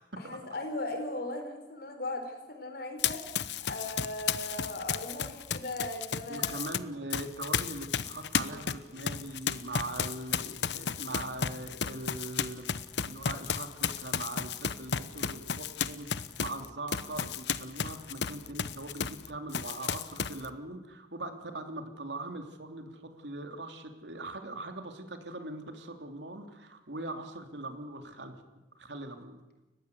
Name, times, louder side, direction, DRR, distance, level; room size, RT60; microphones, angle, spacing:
voice 1, 0.2-3.2 3.6-6.7 26.9-27.1, left 2 dB, 60° left, 5 dB, 4.5 m, -38 dB
Run, 3.0-6.8 7.1-19.3 19.5-20.5, left 7 dB, 80° left, 0.9 m, -33 dB
voice 2, 6.3-12.7 13.0-28.3 28.8-29.4, right 2 dB, 90° right, 6 dB, 3.1 m, -41 dB
30.0 x 15.5 x 8.2 m, 1.0 s
head